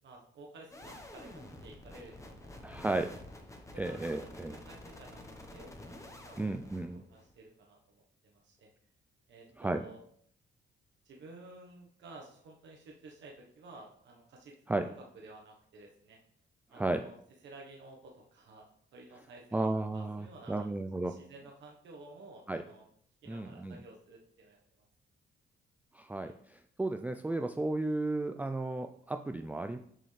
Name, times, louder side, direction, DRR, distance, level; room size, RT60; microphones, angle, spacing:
voice 1, 0.0-3.0 3.7-5.2 5.5-8.7 9.3-10.0 11.0-16.2 16.7-17.1 17.4-18.7 18.9-20.7 21.1-22.8 23.2-24.8 26.2-26.3, right 2 dB, 65° right, -1 dB, 1.2 m, -53 dB
sound 1, 0.7-7.4, left 1 dB, 15° left, 1.2 m, -49 dB
voice 2, 2.6-3.1 3.8-4.6 6.4-7.0 9.6-9.8 14.7-14.9 16.7-17.0 19.5-21.2 22.5-22.6 23.3-23.8 25.9-29.8, right 2 dB, 10° right, 6 dB, 0.4 m, -34 dB
7.4 x 5.2 x 3.3 m, 0.64 s
cardioid pair, 90°, 20 cm